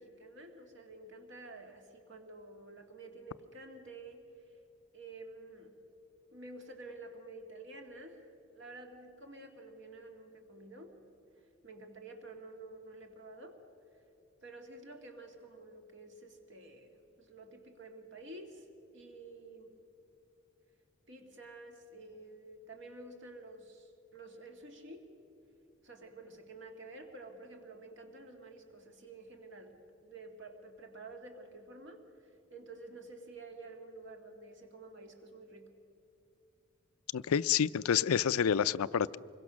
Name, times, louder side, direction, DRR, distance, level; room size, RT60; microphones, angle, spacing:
voice 1, 0.0-4.3 4.9-5.7 6.3-8.3 8.5-10.9 11.4-13.6 14.4-18.7 18.9-19.8 21.1-25.1 25.8-35.7, right 2 dB, 55° right, 4 dB, 2.3 m, -50 dB
voice 2, 37.1-39.2, left 8 dB, 85° left, 17 dB, 0.4 m, -28 dB
25.5 x 22.0 x 6.3 m, 2.8 s
head